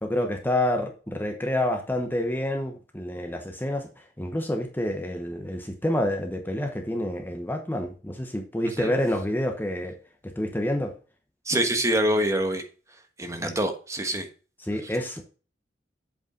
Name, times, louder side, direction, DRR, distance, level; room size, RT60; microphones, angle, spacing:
voice 1, 0.0-3.9 4.2-9.9 10.2-10.9 13.4-13.5 14.7-15.2, left 1 dB, 10° left, 1.1 m, -28 dB
voice 2, 11.4-12.7 13.2-14.3 14.8-15.0, right 1 dB, 15° right, 1.3 m, -26 dB
8.2 x 5.3 x 5.0 m
head